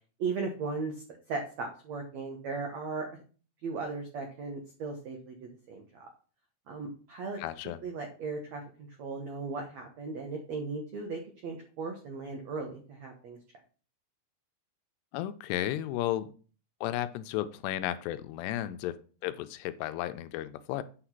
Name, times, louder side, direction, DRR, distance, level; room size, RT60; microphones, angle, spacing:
voice 1, 0.2-3.2 3.6-6.1 6.7-7.4 7.8-13.4, right 4 dB, 75° right, 3 dB, 1.6 m, -37 dB
voice 2, 7.4-7.8 15.1-16.3 16.8-19.0 19.2-20.8, left 13 dB, 80° left, 12 dB, 2.6 m, -33 dB
8.6 x 5.0 x 5.8 m, 0.39 s
omnidirectional pair, 5.0 m